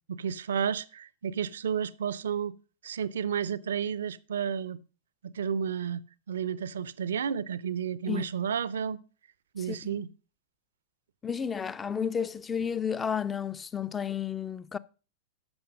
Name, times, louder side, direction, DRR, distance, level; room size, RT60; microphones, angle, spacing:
voice 1, 0.1-2.5 2.8-4.8 5.2-9.0 9.5-10.1, right 7 dB, 65° right, 0.5 m, -32 dB
voice 2, 9.6-10.0 11.2-14.8, left 7 dB, 20° left, 0.5 m, -32 dB
13.0 x 5.8 x 5.3 m
figure-of-eight pair, 95°, 0 cm